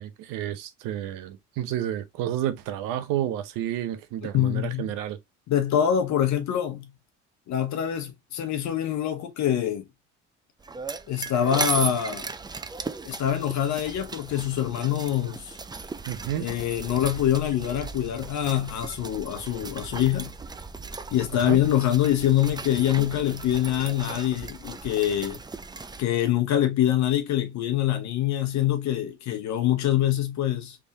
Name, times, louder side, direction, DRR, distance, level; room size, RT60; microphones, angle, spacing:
voice 1, 0.0-5.2 16.0-16.5 21.5-21.6, right 11 dB, 80° right, 0.7 m, -30 dB
voice 2, 4.3-4.9 5.5-6.9 7.5-9.8 11.1-12.3 13.0-15.6 16.4-20.3 21.1-25.4 26.0-30.8, left 11 dB, 60° left, 1.0 m, -25 dB
sound 1, 10.6-26.0, right 4 dB, 15° right, 0.4 m, -37 dB
3.5 x 3.4 x 2.7 m
supercardioid pair, 80°, 32 cm